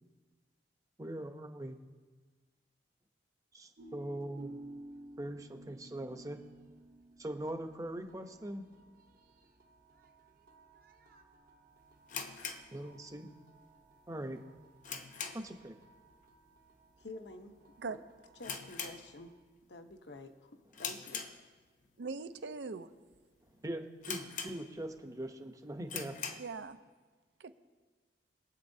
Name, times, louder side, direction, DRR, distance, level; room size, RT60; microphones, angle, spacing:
voice 1, 1.0-1.8 3.5-4.6 5.2-6.4 7.2-8.6 12.7-13.3 14.1-14.4 15.3-15.8 23.6-26.2, right 1 dB, 20° right, 7 dB, 0.7 m, -41 dB
sound 1, 3.8-19.4, right 1 dB, 55° right, 0.8 m, -56 dB
sound 2, 12.1-13.4 13.7-13.8 14.3-15.7 16.0-16.3 16.5-16.6 17.3-17.6 17.9-18.0 18.4-19.6 19.9-20.2 20.7-21.9 22.4-22.5 23.1-23.2 23.5-23.6 24.0-25.0 25.4-25.5 25.8-26.6, left 6 dB, 45° left, 0.8 m, -42 dB
voice 2, 17.0-17.5 17.8-18.0 18.4-19.3 19.6-21.2, left 2 dB, 70° left, 6 dB, 0.9 m, -49 dB
voice 3, 22.0-22.9 26.4-26.8 27.4-27.6, right 4 dB, 80° right, 10 dB, 0.6 m, -41 dB
22.5 x 7.8 x 2.7 m, 1.4 s
head